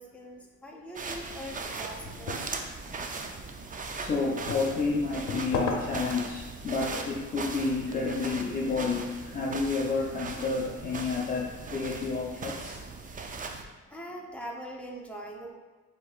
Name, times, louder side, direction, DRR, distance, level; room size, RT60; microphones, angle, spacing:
voice 1, 0.0-2.6 13.9-15.5, equal, 5° left, -2 dB, 0.8 m, -42 dB
sound 1, 0.9-13.6, right 4 dB, 25° right, 0.5 m, -39 dB
sound 2, 2.0-8.5, left 3 dB, 90° left, 0.7 m, -39 dB
voice 2, 4.0-12.8, left 4 dB, 30° left, -4 dB, 0.5 m, -30 dB
7.6 x 2.8 x 2.4 m, 1.3 s
cardioid pair, 90°, 30 cm